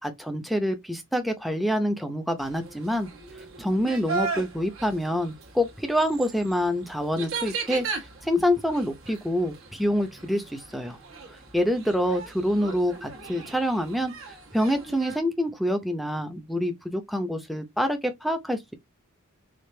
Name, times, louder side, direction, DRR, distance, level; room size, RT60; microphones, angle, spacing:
voice 1, 0.0-3.1 3.6-7.9 8.2-11.0 11.5-14.1 14.5-18.7, equal, ahead, 0.6 m, -26 dB
sound 1, 2.4-15.2, right 4 dB, 65° right, 1.2 m, -38 dB
5.0 x 2.5 x 3.2 m
head